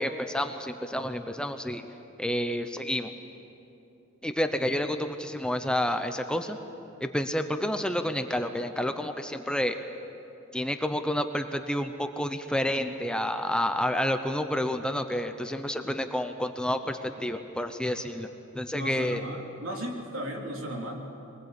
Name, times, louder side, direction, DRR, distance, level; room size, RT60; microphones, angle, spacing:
voice 1, 0.0-1.9 2.2-3.1 4.2-6.6 7.0-9.8 10.5-18.3 18.5-19.2, left 1 dB, 5° left, 7 dB, 0.8 m, -29 dB
voice 2, 18.7-20.9, equal, 80° right, 0 dB, 3.6 m, -35 dB
23.5 x 20.0 x 8.4 m, 2.8 s
head